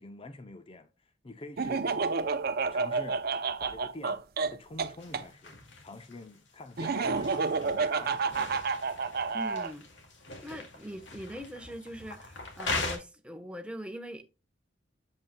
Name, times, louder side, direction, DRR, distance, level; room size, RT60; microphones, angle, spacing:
voice 1, 0.0-1.9 2.7-3.2 3.6-4.2 4.5-8.2, left 2 dB, 30° left, 0.6 m, -46 dB
Laughter, 1.6-5.2 6.8-9.7, right 4 dB, 55° right, 0.6 m, -30 dB
sound 1, 5.0-13.0, left 3 dB, 75° left, 2.2 m, -40 dB
voice 2, 9.3-9.9 10.4-14.2, equal, 5° right, 1.0 m, -42 dB
7.9 x 7.4 x 2.2 m
head